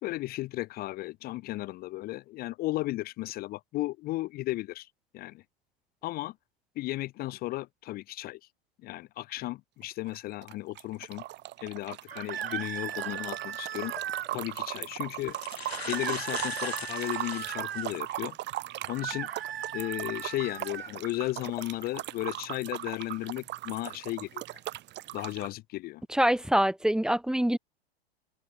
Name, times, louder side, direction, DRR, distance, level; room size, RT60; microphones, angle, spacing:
voice 1, 0.0-4.9 5.1-5.4 6.0-6.3 6.8-8.4 8.8-11.2 11.6-13.9 14.3-15.4 15.9-18.4 18.9-19.3 19.7-24.4 25.1-26.0, left 18 dB, 30° left, 0.8 m, -35 dB
sound 1, 9.8-25.5, right 16 dB, 35° right, 5.3 m, -39 dB
sound 2, 12.1-14.3 15.7-17.9 18.9-20.9, right 10 dB, 70° right, 2.4 m, -37 dB
sound 3, 13.9-14.0 14.9-15.0 15.2-18.0 18.6-18.7 20.5-20.8 21.4-21.6, left 6 dB, 80° left, 3.7 m, -40 dB
voice 2, 26.1-27.6, right 1 dB, ahead, 1.2 m, -25 dB
figure-of-eight pair, 100°, 31 cm